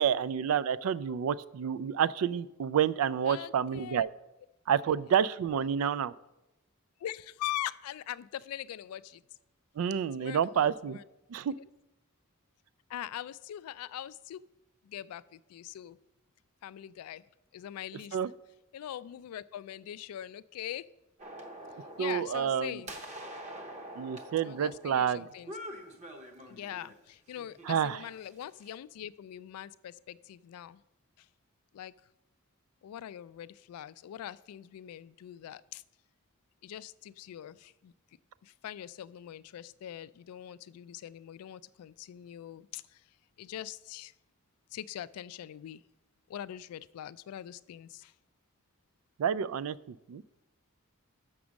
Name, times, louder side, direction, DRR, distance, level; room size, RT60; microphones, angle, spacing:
voice 1, 0.0-4.1 4.7-6.1 9.8-11.0 11.3-11.5 18.1-18.3 22.0-22.8 24.0-25.3 27.7-28.0 49.2-49.8 50.1-50.2, right 8 dB, 70° right, 18 dB, 0.3 m, -29 dB
voice 2, 3.3-4.1 7.0-9.2 10.2-11.0 12.9-14.4 14.8-16.0 16.6-17.2 17.5-18.2 18.7-20.8 22.0-23.0 24.4-25.5 26.5-30.8 31.2-31.3 31.7-31.9 32.8-35.8 36.6-37.9 38.4-43.0 43.4-44.1 44.7-45.8 46.3-48.1, left 11 dB, 90° left, 17 dB, 0.3 m, -42 dB
sound 1, 21.2-27.0 27.4-28.7, equal, 30° right, 0.8 m, -46 dB
7.0 x 6.1 x 6.3 m, 0.95 s
head